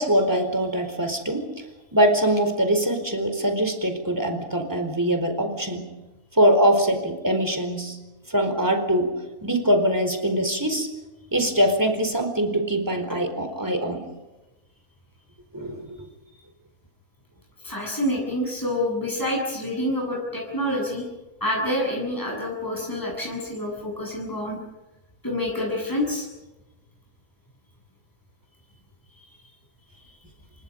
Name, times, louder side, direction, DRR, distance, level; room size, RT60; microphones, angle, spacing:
voice 1, 0.0-1.5 1.9-5.9 6.3-8.0 8.3-9.1 9.4-10.9 11.3-14.0 15.5-16.1, right 1 dB, 15° right, 6 dB, 4.4 m, -23 dB
voice 2, 17.6-21.0 21.4-24.6 25.2-26.3, left 1 dB, 15° left, -3 dB, 7.9 m, -27 dB
30.0 x 25.0 x 5.4 m, 1.1 s
omnidirectional pair, 1.5 m